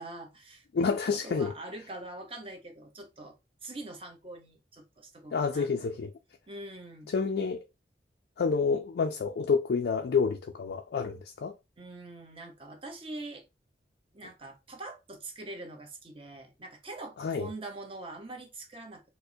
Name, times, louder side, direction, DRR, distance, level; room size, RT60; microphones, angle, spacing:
voice 1, 0.0-3.4 3.6-5.7 6.5-7.1 11.8-13.4 14.1-19.0, right 2 dB, 30° right, 0.8 m, -44 dB
voice 2, 0.7-1.5 5.3-6.1 7.1-7.6 8.4-11.6 17.2-17.5, left 5 dB, 65° left, 0.4 m, -28 dB
4.3 x 2.1 x 2.6 m
head